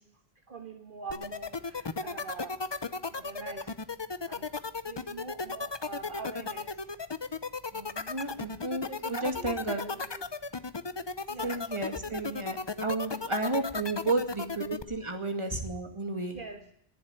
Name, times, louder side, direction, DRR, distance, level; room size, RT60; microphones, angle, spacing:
voice 1, 0.5-2.6 3.1-3.7 4.3-4.5 4.9-6.8 8.9-10.3 11.3-12.2 13.5-13.8 16.3-16.6, right 4 dB, 55° right, 4 dB, 1.5 m, -44 dB
sound 1, 1.1-14.8, left 4 dB, 30° left, 0.7 m, -35 dB
voice 2, 7.7-9.8 11.4-16.4, right 2 dB, 30° right, 5 dB, 2.2 m, -32 dB
21.0 x 7.7 x 8.9 m, 0.71 s
omnidirectional pair, 1.1 m